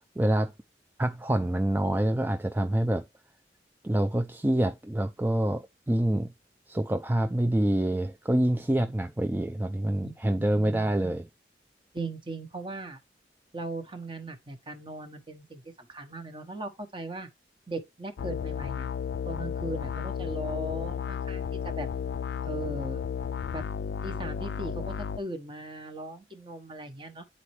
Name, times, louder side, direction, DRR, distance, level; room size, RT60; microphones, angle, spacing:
voice 1, 0.2-0.5 1.0-3.0 3.8-6.3 6.7-11.2, right 1 dB, 10° right, 0.3 m, -26 dB
voice 2, 11.9-13.0 13.5-17.3 17.7-18.9 19.3-21.9 22.4-23.0 23.5-23.6 24.0-27.3, right 2 dB, 25° right, 1.0 m, -38 dB
sound 1, 18.2-25.2, left 7 dB, 70° left, 0.3 m, -33 dB
9.8 x 4.2 x 3.1 m
head